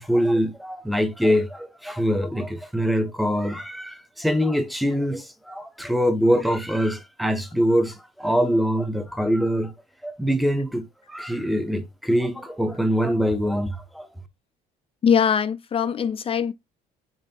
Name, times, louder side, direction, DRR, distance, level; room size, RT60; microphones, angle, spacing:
voice 1, 0.0-9.7 10.0-14.1, equal, ahead, 0.7 m, -24 dB
voice 2, 15.0-16.5, left 7 dB, 35° left, 0.4 m, -21 dB
5.3 x 3.2 x 2.7 m
cardioid pair, 110°, 17 cm